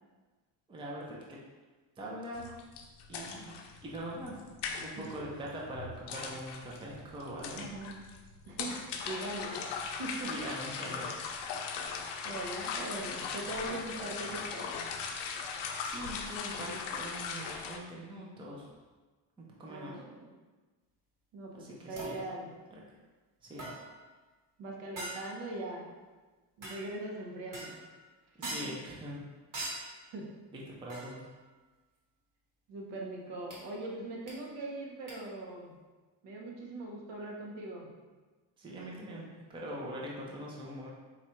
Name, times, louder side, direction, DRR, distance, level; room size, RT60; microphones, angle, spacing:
voice 1, 0.7-1.4 2.0-2.5 3.1-3.6 3.8-4.4 4.8-7.7 10.3-11.1 15.8-18.7 19.4-20.0 21.5-22.2 22.7-22.8 23.4-23.7 28.4-29.2 30.5-31.2 38.6-40.9, equal, 10° right, -4 dB, 0.5 m, -42 dB
sound 1, 2.3-17.8, left 5 dB, 70° left, 0.6 m, -39 dB
voice 2, 7.5-8.0 8.5-8.7 9.1-9.7 10.0-10.3 12.2-14.7 19.6-20.2 21.3-22.5 24.6-25.9 26.6-27.8 28.4-28.5 30.1-30.3 32.7-35.7 36.2-37.9, right 2 dB, 70° right, -1 dB, 1.1 m, -41 dB
sound 2, 22.0-22.3 23.6-24.0 25.0-25.5 26.6-27.0 27.5-27.9 28.4-28.9 29.5-30.0 30.9-31.2 33.5-33.6 34.3-34.4 35.1-35.2, right 1 dB, 45° right, 1.2 m, -42 dB
4.2 x 2.4 x 4.3 m, 1.3 s
cardioid pair, 150°, 43 cm